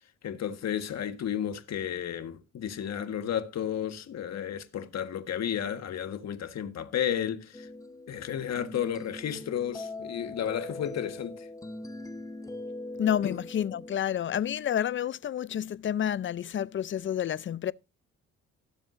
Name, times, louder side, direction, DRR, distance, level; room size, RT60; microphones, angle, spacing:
voice 1, 0.2-7.7 8.1-11.5 13.2-13.3, left 9 dB, 60° left, 1.6 m, -32 dB
sound 1, 7.5-14.0, left 2 dB, 10° left, 1.0 m, -41 dB
voice 2, 13.0-17.7, left 9 dB, 40° left, 0.5 m, -29 dB
17.5 x 7.3 x 2.6 m
cardioid pair, 90°, 30 cm